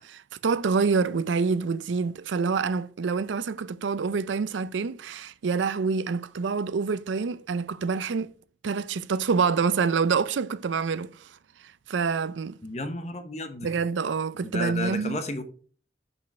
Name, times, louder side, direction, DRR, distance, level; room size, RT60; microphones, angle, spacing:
voice 1, 0.0-8.3 8.6-11.3 11.9-12.6 13.6-15.2, right 5 dB, 90° right, 0.5 m, -27 dB
voice 2, 12.6-13.7 14.5-15.4, left 2 dB, 40° left, 1.0 m, -32 dB
6.2 x 5.4 x 5.5 m
head